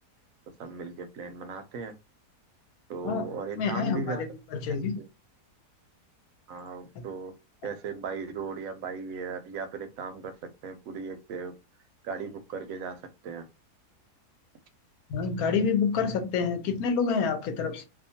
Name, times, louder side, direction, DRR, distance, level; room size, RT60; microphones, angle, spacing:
voice 1, 0.6-1.9 2.9-4.2 5.0-5.1 6.5-7.3 7.6-10.3 10.6-11.5 12.0-13.5, right 5 dB, 70° right, 0.9 m, -37 dB
voice 2, 3.6-5.0 15.1-17.9, left 5 dB, 70° left, 1.0 m, -28 dB
2.8 x 2.3 x 2.7 m
omnidirectional pair, 1.7 m